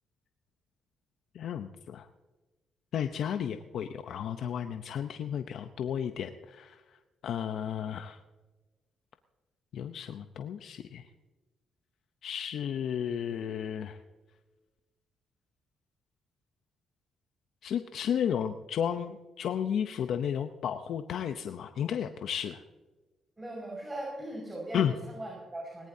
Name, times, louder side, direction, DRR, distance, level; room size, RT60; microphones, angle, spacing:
voice 1, 1.3-2.1 2.9-6.8 7.2-8.2 9.7-11.0 12.2-14.0 17.6-22.6 24.7-24.9, left 8 dB, 75° left, 8 dB, 0.7 m, -33 dB
voice 2, 23.4-25.9, right 1 dB, 20° right, -2 dB, 5.3 m, -39 dB
20.0 x 18.5 x 2.7 m, 1.2 s
cardioid pair, 75°, 0 cm